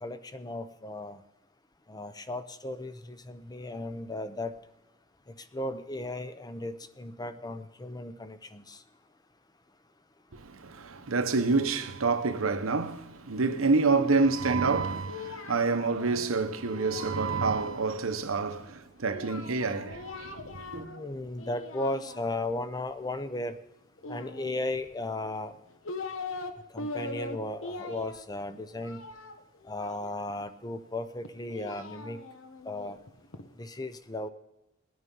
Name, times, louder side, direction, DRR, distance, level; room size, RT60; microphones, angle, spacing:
voice 1, 0.0-1.2 1.9-4.5 5.5-8.8 20.7-23.6 24.1-25.5 26.7-29.0 29.7-32.2 32.6-33.0 33.6-34.3, left 2 dB, 20° left, 0.7 m, -36 dB
voice 2, 10.3-20.9, right 4 dB, 85° right, 1.0 m, -28 dB
Singing, 14.6-17.9 19.0-21.1 21.4-22.6 24.0-24.9 25.5-26.5 26.8-30.4 31.2-33.5, left 3 dB, 70° left, 1.1 m, -42 dB
18.5 x 9.6 x 5.5 m
head